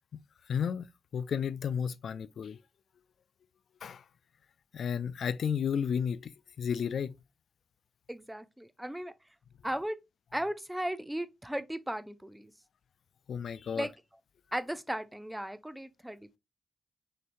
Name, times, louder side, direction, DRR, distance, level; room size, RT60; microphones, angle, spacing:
voice 1, 0.5-0.9 1.1-2.6 3.8-4.0 4.7-6.3 6.6-7.1 13.3-13.9, left 7 dB, 75° left, 0.3 m, -32 dB
voice 2, 8.1-9.1 9.6-10.0 10.3-12.5 13.8-13.9 14.5-16.4, right 1 dB, 10° right, 0.6 m, -36 dB
6.4 x 2.9 x 2.6 m
cardioid pair, 60°, 0 cm